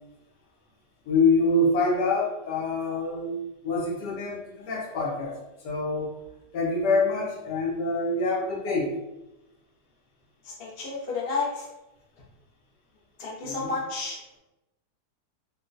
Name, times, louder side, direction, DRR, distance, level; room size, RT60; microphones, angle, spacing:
voice 1, 1.1-3.4 3.6-5.4 5.6-6.1 6.5-8.9 13.4-13.7, left 2 dB, 80° left, -3 dB, 1.4 m, -25 dB
voice 2, 10.6-11.6 13.2-14.2, left 4 dB, 45° left, -4 dB, 0.8 m, -31 dB
3.9 x 2.2 x 2.5 m, 0.96 s
omnidirectional pair, 1.8 m